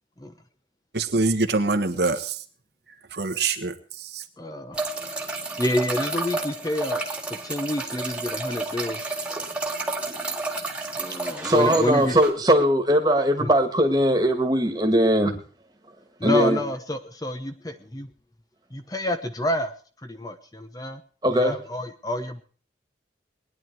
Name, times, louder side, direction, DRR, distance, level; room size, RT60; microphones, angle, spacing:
voice 1, 0.9-2.3 3.1-3.7, right 3 dB, 65° right, 1.3 m, -24 dB
voice 2, 4.4-4.8 5.2-5.3 5.6-9.1 11.0-12.2 13.4-13.5 16.2-18.1 18.7-19.7 20.0-21.0 21.3-22.4, left 1 dB, 20° left, 1.0 m, -28 dB
sound 1, 4.7-12.3, right 2 dB, 5° right, 1.7 m, -31 dB
voice 3, 11.4-15.4 16.2-16.6 21.2-21.6, right 1 dB, 20° right, 1.9 m, -20 dB
20.0 x 10.5 x 4.6 m
head